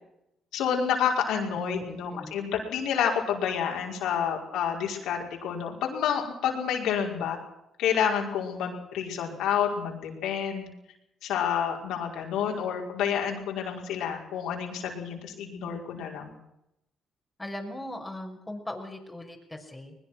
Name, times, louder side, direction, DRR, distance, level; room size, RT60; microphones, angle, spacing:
voice 1, 0.5-7.4 7.8-10.7 11.2-16.4, left 8 dB, 85° left, 0 dB, 5.4 m, -29 dB
voice 2, 1.5-2.3 17.4-20.0, left 1 dB, 10° left, 2 dB, 5.9 m, -39 dB
21.5 x 21.0 x 6.2 m, 0.83 s
cardioid pair, 90°, 0 cm